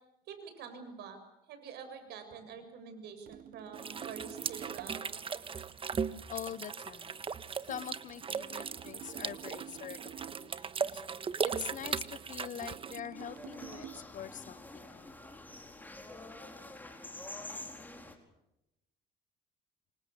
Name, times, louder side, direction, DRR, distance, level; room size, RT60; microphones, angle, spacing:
voice 1, 0.3-1.2 1.5-5.1, right 6 dB, 75° right, 8 dB, 7.0 m, -46 dB
sound 1, 3.3-5.3 7.7-10.6 11.8-14.0, right 10 dB, 60° right, 1.1 m, -49 dB
sound 2, 3.7-13.0, right 6 dB, 30° right, 1.4 m, -38 dB
voice 2, 6.3-7.2 7.7-10.6 10.9-11.0 11.4-15.2, left 10 dB, 50° left, 18 dB, 1.0 m, -44 dB
sound 3, 13.1-18.2, left 2 dB, 10° left, 4.8 m, -47 dB
29.0 x 25.5 x 7.0 m, 0.90 s
cardioid pair, 110°, 17 cm